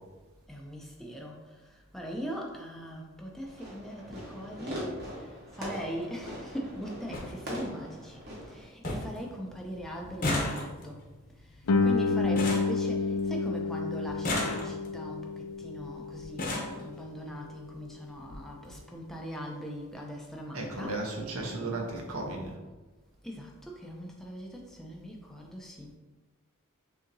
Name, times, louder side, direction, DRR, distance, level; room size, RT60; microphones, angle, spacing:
voice 1, 0.5-8.2 8.5-11.0 11.4-21.1 23.2-26.0, equal, ahead, -1 dB, 0.5 m, -40 dB
Fireworks, 3.5-8.6, equal, 50° right, 1.3 m, -41 dB
sound 1, 5.0-5.2 6.4-6.5 6.8-6.9 7.1-7.3 7.8-8.3 8.5-8.6 8.8-9.2 9.5-13.5 14.1-15.0 15.8-15.9 16.2-16.8 17.7-17.8 18.2-18.4 18.6-18.8, left 2 dB, 40° left, 0.8 m, -34 dB
Guitar, 11.7-17.0, left 3 dB, 80° left, 0.4 m, -30 dB
voice 2, 20.5-22.5, right 2 dB, 75° right, 1 dB, 0.9 m, -35 dB
6.4 x 2.8 x 2.6 m, 1.2 s
head